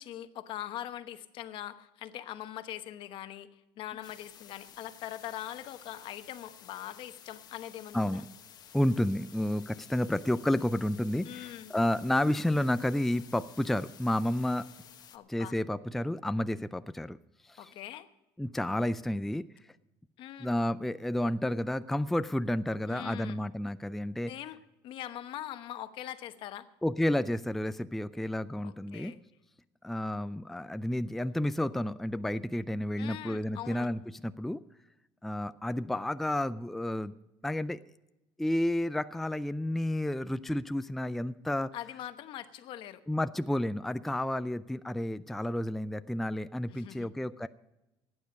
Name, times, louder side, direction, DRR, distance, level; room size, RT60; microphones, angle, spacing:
voice 1, 0.0-8.2 11.2-11.7 15.1-15.6 17.6-18.1 20.2-20.5 22.9-23.4 24.3-24.6 24.8-26.7 28.6-29.2 33.0-33.9 41.7-43.0 46.7-47.1, left 12 dB, 65° left, 10 dB, 1.0 m, -42 dB
sound 1, 4.0-15.2, left 9 dB, 45° left, 1.2 m, -53 dB
voice 2, 7.9-8.3 8.7-14.7 15.3-17.2 17.4-17.7 18.4-19.5 20.4-24.3 26.8-29.1 29.8-34.6 35.2-37.1 37.4-37.8 38.4-41.7 43.1-47.5, left 1 dB, 5° left, 12 dB, 0.4 m, -31 dB
17.0 x 9.6 x 5.3 m, 0.97 s
cardioid pair, 120°, 9 cm